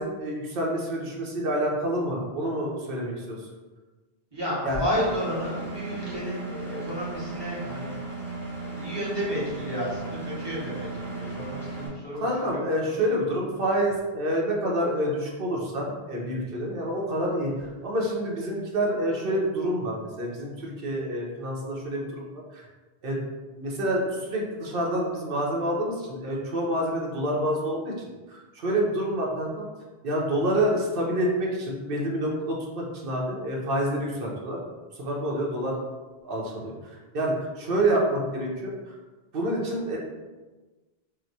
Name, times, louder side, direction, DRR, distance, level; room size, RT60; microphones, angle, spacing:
voice 1, 0.0-3.4 4.7-4.8 12.1-22.6 23.0-23.2 23.6-27.9 28.3-29.6 30.0-34.6 35.0-35.7 36.2-39.0 39.3-40.0, right 1 dB, 65° right, -2 dB, 0.9 m, -28 dB
voice 2, 4.3-7.9 8.6-12.6, equal, 25° right, -8 dB, 1.2 m, -32 dB
Engine, 4.9-11.9, right 3 dB, 5° left, 0.6 m, -36 dB
2.9 x 2.1 x 3.9 m, 1.2 s
omnidirectional pair, 1.0 m